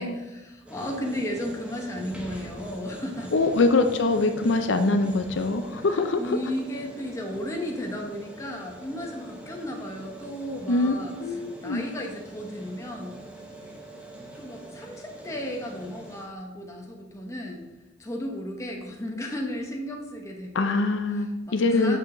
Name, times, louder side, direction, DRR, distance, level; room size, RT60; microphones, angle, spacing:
voice 1, 0.0-3.3 5.9-11.1 11.6-13.2 14.4-17.6 18.0-20.9 21.1-22.0, equal, 15° left, 0 dB, 1.1 m, -34 dB
sound 1, 0.7-16.2, right 1 dB, 5° right, 1.0 m, -43 dB
voice 2, 3.3-6.2 10.7-10.9 11.2-11.8 20.5-22.0, left 3 dB, 80° left, 7 dB, 0.6 m, -23 dB
8.0 x 6.2 x 3.8 m, 1.1 s
head